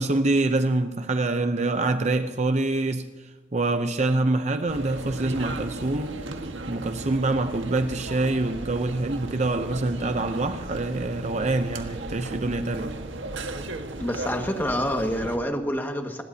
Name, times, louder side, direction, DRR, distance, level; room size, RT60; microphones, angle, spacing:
voice 1, 0.0-3.1 3.5-6.2 6.7-13.0, right 2 dB, 35° right, 0.6 m, -25 dB
sound 1, 4.7-15.4, right 2 dB, 85° right, 1.6 m, -36 dB
voice 2, 14.0-16.2, equal, 10° left, 1.7 m, -27 dB
25.0 x 20.5 x 2.8 m
head